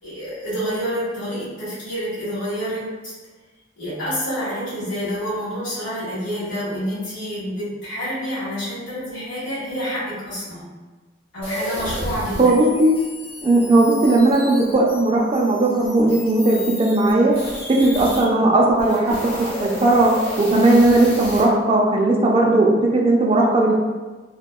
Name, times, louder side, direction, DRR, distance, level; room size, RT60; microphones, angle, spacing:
voice 1, 0.0-3.1 3.8-10.7 11.3-12.5 17.7-18.0, equal, 75° left, -10 dB, 1.5 m, -28 dB
sound 1, 11.4-18.2 18.7-21.4, left 1 dB, 30° left, 0.8 m, -33 dB
voice 2, 12.4-12.9 13.4-17.3 17.7-23.7, right 2 dB, 30° right, -1 dB, 0.3 m, -17 dB
2.7 x 2.1 x 2.2 m, 1.3 s
head